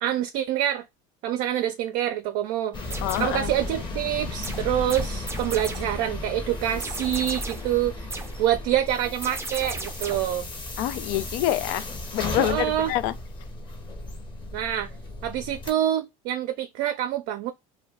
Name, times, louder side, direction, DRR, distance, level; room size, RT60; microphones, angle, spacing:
voice 1, 0.0-0.8 1.2-10.5 12.3-12.9 14.5-14.9 15.2-17.5, right 11 dB, 65° right, 0.4 m, -26 dB
sound 1, 2.7-15.7, left 2 dB, 25° left, 0.9 m, -35 dB
sound 2, 2.8-3.4 4.4-6.0 6.8-7.8 8.1-8.5 9.2-10.4, right 3 dB, 15° right, 0.6 m, -37 dB
voice 2, 3.0-3.5 10.8-11.8 12.1-13.1, left 14 dB, 70° left, 0.4 m, -26 dB
2.3 x 2.2 x 3.4 m
supercardioid pair, 105°, 18 cm